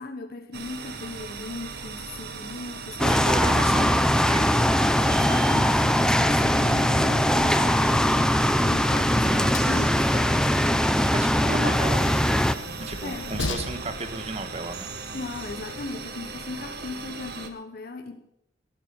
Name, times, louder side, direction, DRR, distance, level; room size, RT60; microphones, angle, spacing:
voice 1, 0.0-3.0 5.0-10.6 13.0-13.4 15.1-18.3, left 3 dB, 55° left, 6 dB, 1.1 m, -37 dB
sound 1, 0.5-17.5, right 4 dB, 60° right, 1.5 m, -38 dB
sound 2, 3.0-12.5, equal, 5° left, 0.6 m, -21 dB
voice 2, 3.0-4.7 9.1-9.9 11.1-12.5 12.8-14.9, right 2 dB, 35° right, 8 dB, 1.4 m, -33 dB
Train, 8.1-15.9, left 3 dB, 90° left, 1.1 m, -40 dB
14.0 x 12.0 x 5.6 m, 0.79 s
head